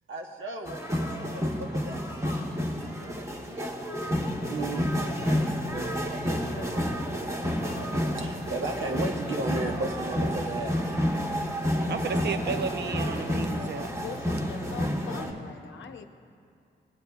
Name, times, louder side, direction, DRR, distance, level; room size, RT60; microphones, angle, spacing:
voice 1, 0.1-2.0 2.9-6.9 8.2-10.8, right 2 dB, 75° right, 2 dB, 1.1 m, -36 dB
sound 1, 0.6-15.3, equal, 15° right, 1.3 m, -30 dB
voice 2, 11.9-13.9, right 6 dB, 60° right, 9 dB, 0.6 m, -33 dB
voice 3, 13.9-16.1, left 7 dB, 75° left, 6 dB, 0.7 m, -42 dB
17.5 x 8.7 x 2.3 m, 2.4 s
cardioid pair, 50°, 20 cm